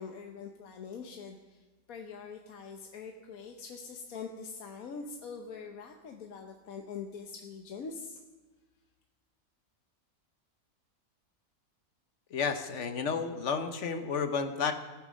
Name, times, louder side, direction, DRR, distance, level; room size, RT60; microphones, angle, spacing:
voice 1, 0.0-8.2, left 5 dB, 80° left, 4 dB, 1.4 m, -43 dB
voice 2, 12.3-14.7, left 5 dB, 60° left, 8 dB, 1.3 m, -31 dB
16.5 x 9.5 x 6.3 m, 1.2 s
omnidirectional pair, 1.5 m